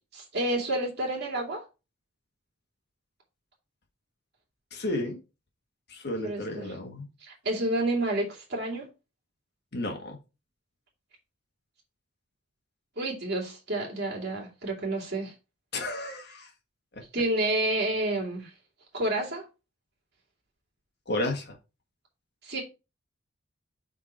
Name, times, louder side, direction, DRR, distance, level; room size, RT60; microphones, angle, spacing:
voice 1, 0.1-1.7 6.2-6.7 7.2-8.9 13.0-15.3 17.1-18.5 18.9-19.5 22.4-22.6, right 1 dB, 50° right, 2.6 m, -29 dB
voice 2, 4.7-5.2 5.9-7.0 9.7-10.2 15.7-16.5 16.9-17.0 21.1-21.6, left 1 dB, 50° left, 1.8 m, -32 dB
5.7 x 4.3 x 4.5 m
head